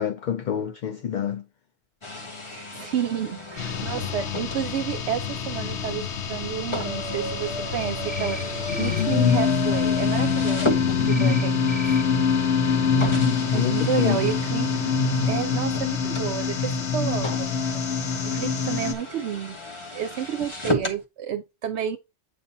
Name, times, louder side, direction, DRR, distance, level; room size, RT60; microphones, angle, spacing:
voice 1, 0.0-1.4 13.2-14.2, left 8 dB, 55° left, 0.5 m, -27 dB
sound 1, 2.0-11.5 12.2-12.3 13.0-21.0, left 2 dB, 30° left, 0.9 m, -34 dB
voice 2, 2.4-11.5 13.5-14.9 15.3-17.5 18.2-19.6 19.9-22.0, right 9 dB, 75° right, 0.9 m, -30 dB
sound 2, 3.6-18.9, left 6 dB, 75° left, 1.2 m, -25 dB
sound 3, 8.1-8.4 8.7-9.0 11.1-11.4 11.7-12.0, right 2 dB, 10° right, 1.2 m, -37 dB
8.3 x 2.8 x 5.3 m
omnidirectional pair, 1.2 m